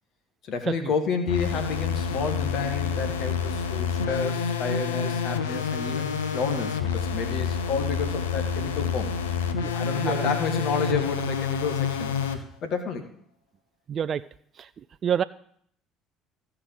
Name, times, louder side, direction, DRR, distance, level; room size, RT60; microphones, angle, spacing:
voice 1, 0.5-9.1 9.7-12.2 12.6-13.0, left 5 dB, 60° left, 6 dB, 1.7 m, -30 dB
sound 1, 1.3-12.4, left 6 dB, 90° left, 0.8 m, -28 dB
voice 2, 13.9-14.2 14.6-14.7 15.0-15.2, right 8 dB, 45° right, 13 dB, 0.3 m, -27 dB
13.5 x 4.8 x 7.5 m, 0.64 s
hypercardioid pair, 65°, 0 cm